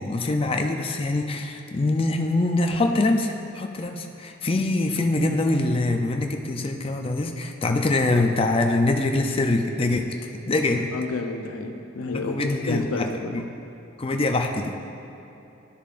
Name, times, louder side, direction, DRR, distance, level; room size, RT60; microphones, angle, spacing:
voice 1, 0.0-10.9 12.1-13.1 13.3-13.5 14.0-14.8, left 2 dB, 25° left, 4 dB, 0.5 m, -24 dB
voice 2, 10.9-13.4, left 3 dB, 85° left, 4 dB, 0.7 m, -30 dB
12.5 x 6.8 x 2.5 m, 3.0 s
head